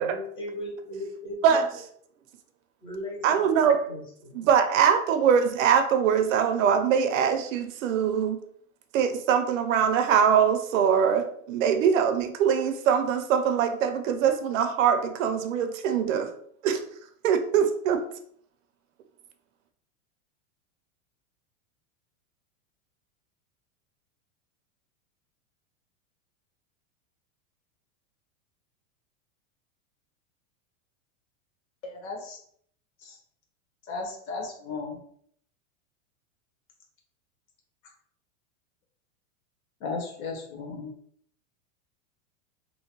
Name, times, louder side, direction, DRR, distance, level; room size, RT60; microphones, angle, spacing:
voice 1, 0.0-1.6 2.8-3.5 3.9-4.4, left 1 dB, 10° left, -4 dB, 0.6 m, -37 dB
voice 2, 3.2-3.9 4.3-8.4 8.9-16.3 16.6-16.8 17.2-18.0, right 7 dB, 75° right, 7 dB, 0.6 m, -23 dB
voice 3, 31.8-32.4 33.0-33.2 33.9-35.0 39.8-40.9, left 4 dB, 90° left, 0 dB, 1.2 m, -35 dB
3.0 x 2.2 x 2.9 m, 0.64 s
supercardioid pair, 165°, 40 cm